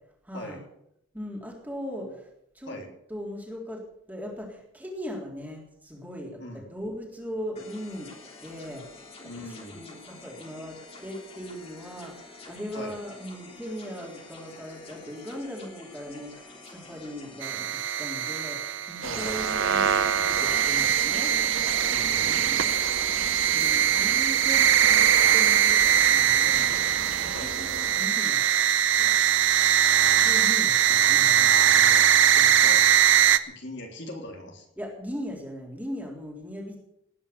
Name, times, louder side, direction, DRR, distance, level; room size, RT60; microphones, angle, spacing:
voice 1, 0.2-0.6 1.1-2.3 2.5-2.8 3.1-8.1 8.4-8.8 9.4-21.3 22.2-22.6 23.2-26.7 27.1-28.4 29.0-29.1 29.9-32.8 34.8-36.8, equal, 10° right, -1 dB, 3.6 m, -39 dB
sound 1, 7.5-17.5, left 3 dB, 30° left, 3.1 m, -48 dB
voice 2, 9.2-9.8 12.7-12.9 19.0-19.4 21.8-22.5 27.3-27.6 32.6-32.9 33.5-34.7, left 1 dB, 60° left, 1 dB, 3.4 m, -40 dB
sound 2, 17.4-33.4, right 9 dB, 65° right, 0.8 m, -21 dB
sound 3, 19.0-28.1, right 5 dB, 90° right, 1.7 m, -36 dB
19.0 x 9.9 x 6.9 m, 0.77 s
head